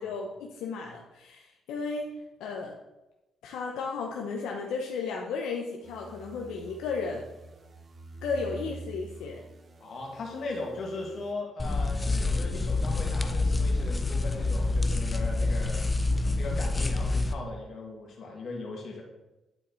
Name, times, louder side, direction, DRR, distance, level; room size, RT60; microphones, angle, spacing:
voice 1, 0.0-2.1 2.4-2.7 3.4-7.3 8.2-9.4, left 4 dB, 85° left, 0 dB, 0.7 m, -34 dB
sound 1, 5.8-11.3, right 1 dB, 40° right, 0.7 m, -46 dB
voice 2, 9.8-15.8 16.4-19.0, left 3 dB, 55° left, -1 dB, 1.9 m, -38 dB
sound 2, 11.6-17.3, left 2 dB, 20° left, 0.5 m, -27 dB
9.0 x 4.3 x 4.0 m, 1.0 s
cardioid pair, 90°, 0 cm